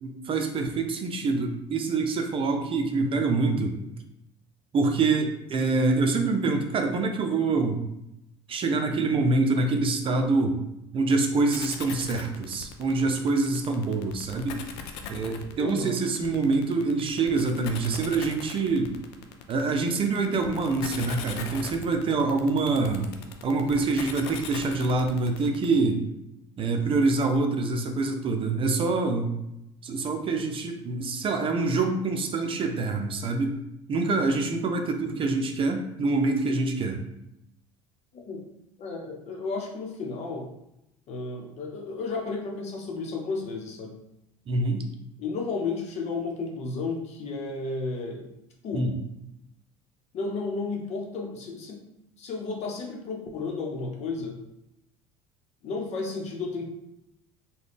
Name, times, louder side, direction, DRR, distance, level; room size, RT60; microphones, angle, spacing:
voice 1, 0.0-3.9 4.7-7.8 8.5-10.6 10.9-14.6 15.1-18.9 19.5-23.1 23.4-26.0 26.6-29.3 29.8-33.6 33.9-37.0 44.5-44.8 48.7-48.9, right 3 dB, 40° right, 4 dB, 0.6 m, -25 dB
sound 1, 11.5-25.7, left 7 dB, 80° left, 0.4 m, -40 dB
voice 2, 15.6-16.0 38.1-38.4 38.8-40.5 41.1-44.0 45.2-48.3 48.6-48.9 50.1-51.8 52.2-54.4 55.6-56.7, left 3 dB, 55° left, 1 dB, 0.9 m, -33 dB
3.8 x 2.3 x 3.4 m, 0.85 s
hypercardioid pair, 75°, 14 cm